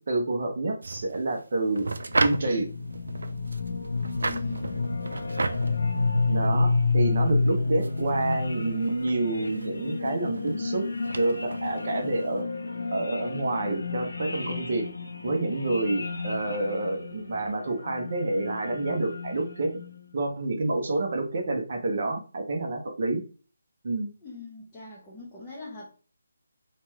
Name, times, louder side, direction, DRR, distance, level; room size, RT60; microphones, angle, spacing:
voice 1, 0.0-1.9 2.2-2.7 6.3-10.9 11.1-12.5 12.9-14.9 15.2-19.8 20.1-23.2 23.8-24.1, right 2 dB, 40° right, 0.6 m, -28 dB
sound 1, 0.8-12.4, right 3 dB, 75° right, 0.3 m, -35 dB
sound 2, 1.7-20.1, left 3 dB, 80° left, 0.6 m, -30 dB
voice 2, 4.2-5.0 24.2-25.9, left 2 dB, 10° left, 0.5 m, -43 dB
3.0 x 2.2 x 3.0 m
hypercardioid pair, 175°, 0 cm